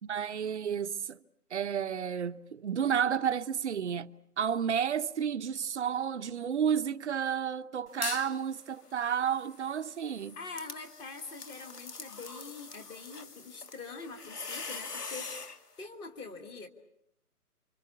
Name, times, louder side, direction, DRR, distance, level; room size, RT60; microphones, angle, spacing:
voice 1, 0.0-1.2 1.5-4.1 4.4-10.4, right 8 dB, 45° right, 0.9 m, -31 dB
sound 1, 7.9-8.4 8.8-15.6, left 4 dB, 80° left, 2.8 m, -43 dB
voice 2, 10.4-16.7, left 4 dB, 10° left, 1.4 m, -44 dB
29.5 x 25.5 x 7.0 m
hypercardioid pair, 155°, 46 cm